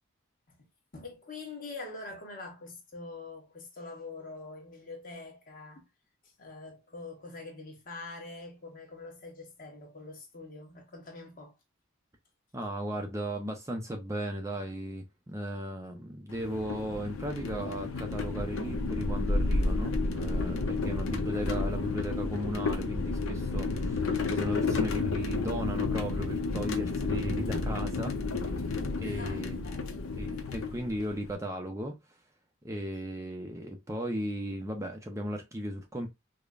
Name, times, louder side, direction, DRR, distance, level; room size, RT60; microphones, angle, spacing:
voice 1, 0.9-5.8 6.2-11.5 21.3-21.7 28.5-28.7 29.0-30.1, left 3 dB, 40° left, 1.2 m, -45 dB
voice 2, 12.5-28.2 29.0-29.6 30.2-31.9 32.6-36.1, equal, 15° right, 0.5 m, -36 dB
sound 1, 16.3-31.3, left 3 dB, 75° left, 0.7 m, -31 dB
5.0 x 2.1 x 2.4 m
head